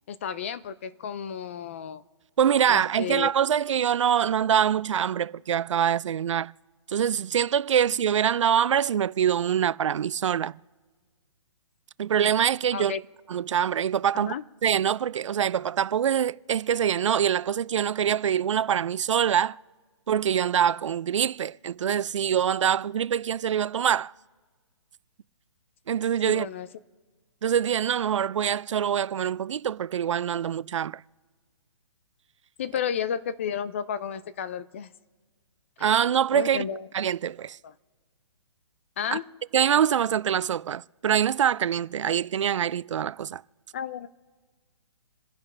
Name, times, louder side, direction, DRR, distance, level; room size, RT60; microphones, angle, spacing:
voice 1, 0.1-2.0 2.7-3.3 12.7-13.0 14.1-14.4 26.3-26.7 32.6-34.9 35.8-35.9 36.3-36.9 37.6-37.7 39.0-39.2 43.7-44.1, left 8 dB, 25° left, 0.4 m, -32 dB
voice 2, 2.4-6.5 6.9-10.6 12.0-12.9 13.3-14.3 14.6-19.6 20.1-24.1 25.9-26.5 27.4-31.0 35.8-36.7 36.9-37.6 39.1-39.2 39.5-43.4, right 9 dB, 80° right, 0.4 m, -24 dB
28.5 x 10.5 x 3.3 m
hypercardioid pair, 165°, 15 cm